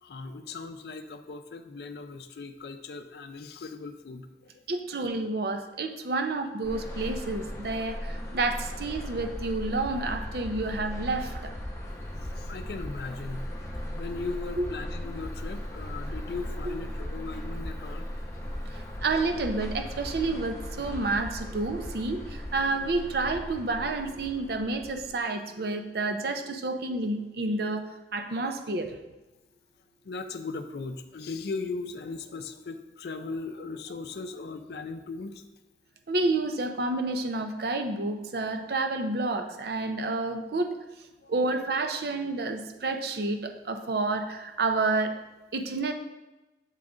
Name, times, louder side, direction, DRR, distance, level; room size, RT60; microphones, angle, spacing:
voice 1, 0.0-4.6 4.9-5.0 12.4-13.5 13.9-18.1 30.0-35.4 41.2-41.3, left 3 dB, 65° left, 7 dB, 0.4 m, -38 dB
voice 2, 4.7-11.6 14.6-14.7 16.6-16.8 18.7-29.0 36.1-40.7 41.3-45.2 45.5-45.9, right 3 dB, 60° right, 6 dB, 0.5 m, -29 dB
sound 1, 6.6-25.2, equal, 15° left, 0.8 m, -37 dB
7.3 x 3.8 x 3.6 m, 1.1 s
head